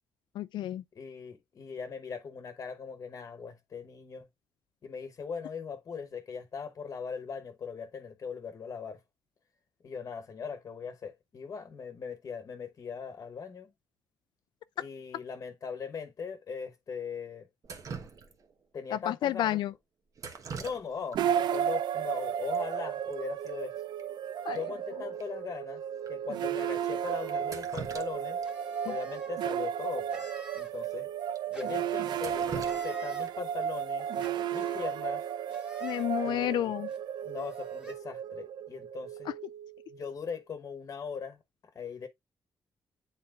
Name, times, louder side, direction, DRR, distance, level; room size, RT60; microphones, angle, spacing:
voice 1, 0.3-0.8 18.9-19.7 24.4-24.6 25.0-25.1 28.8-29.0 35.8-36.9 39.2-39.3, left 12 dB, 90° left, 0.4 m, -31 dB
voice 2, 0.9-4.3 4.8-9.0 9.8-13.7 14.8-17.5 18.7-19.6 20.5-21.2 21.5-23.7 24.5-25.8 26.1-28.4 28.8-30.2 30.5-31.1 31.5-34.1 34.5-35.2 36.2-36.7 37.2-39.3 39.9-41.4 41.7-42.1, left 6 dB, 45° left, 1.1 m, -40 dB
Drip, 17.6-18.6 20.2-21.2 21.5-21.6 22.5-22.6 22.9-23.1 23.5-23.6 24.0-24.1 24.5-24.6 25.2-25.3 26.0-26.1 27.3-28.5 28.9-29.0 30.3-30.4 30.8-30.9 31.4-31.5 31.9-33.5 35.5-35.8 36.3-36.6, right 5 dB, 50° right, 1.2 m, -43 dB
sound 1, 21.1-40.3, right 9 dB, 70° right, 0.5 m, -34 dB
sound 2, 28.4-29.3 30.1-30.7 31.5-32.1 32.6-33.3 34.2-34.8 35.5-36.1 36.9-37.0 37.3-37.9, equal, 10° right, 1.9 m, -49 dB
9.7 x 4.2 x 2.4 m
cardioid pair, 135°, 8 cm